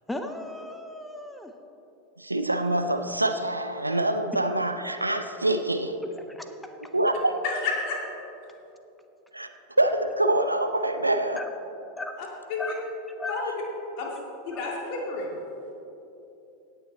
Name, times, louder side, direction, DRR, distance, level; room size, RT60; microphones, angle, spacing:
voice 1, 0.1-1.5 6.2-6.8 11.4-11.5 12.0-12.2 12.6-12.8 13.2-13.5 14.0-14.2 14.5-14.6, left 2 dB, 5° left, 6 dB, 0.8 m, -36 dB
voice 2, 2.2-6.0 6.9-7.4 9.3-9.5 9.8-11.4, right 1 dB, 85° right, 8 dB, 0.5 m, -25 dB
voice 3, 7.4-8.0 12.5-12.6 13.3-13.4 14.0-14.1 14.4-15.3, left 4 dB, 45° left, -1 dB, 2.4 m, -30 dB
17.5 x 6.9 x 4.1 m, 3.0 s
figure-of-eight pair, 85°, 0 cm